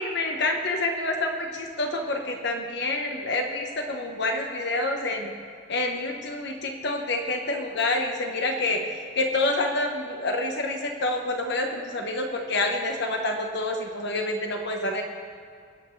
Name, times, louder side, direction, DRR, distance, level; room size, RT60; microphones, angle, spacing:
voice 1, 0.0-5.3 5.7-15.0, left 2 dB, 55° left, 3 dB, 1.0 m, -27 dB
23.0 x 8.6 x 3.2 m, 2.3 s
head